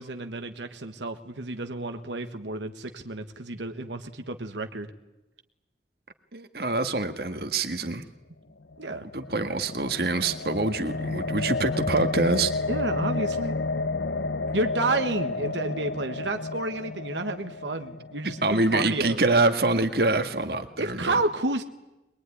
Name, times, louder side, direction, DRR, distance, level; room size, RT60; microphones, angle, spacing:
voice 1, 0.0-4.9 8.8-9.1 12.7-13.6 14.5-19.2 20.8-21.6, right 2 dB, 85° right, 6 dB, 1.6 m, -30 dB
voice 2, 6.3-8.0 9.1-12.5 18.4-21.2, right 2 dB, 60° right, 7 dB, 1.8 m, -25 dB
sound 1, 8.7-18.9, left 3 dB, 80° left, 0.8 m, -31 dB
23.0 x 22.0 x 10.0 m, 0.98 s
head